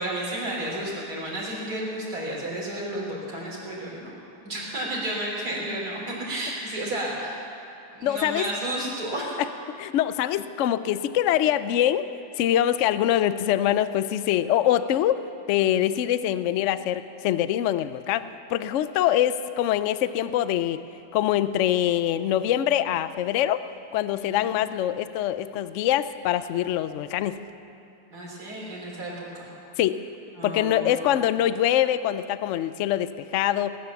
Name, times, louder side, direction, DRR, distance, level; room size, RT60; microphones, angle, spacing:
voice 1, 0.0-4.2 4.4-7.4 7.9-9.4 24.1-24.4 28.1-29.5 30.4-31.1, right 1 dB, 60° right, -5 dB, 4.4 m, -32 dB
voice 2, 8.0-8.5 9.8-12.1 12.4-15.2 15.5-20.8 21.1-23.6 23.9-27.4 29.8-30.0 30.4-33.8, left 11 dB, 80° left, 13 dB, 0.6 m, -24 dB
19.5 x 9.7 x 7.0 m, 2.8 s
omnidirectional pair, 1.8 m